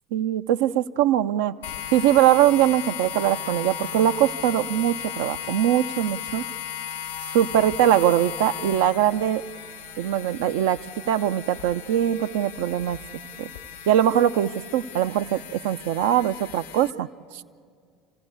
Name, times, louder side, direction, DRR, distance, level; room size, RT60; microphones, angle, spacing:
voice 1, 0.1-1.5 1.9-6.4 7.3-9.4 10.0-13.0 13.4-13.5 13.9-17.1, right 11 dB, 65° right, 10 dB, 0.6 m, -22 dB
sound 1, 1.6-16.9, left 9 dB, 80° left, 1.5 m, -36 dB
27.0 x 15.5 x 9.6 m, 2.1 s
figure-of-eight pair, 65°, 0 cm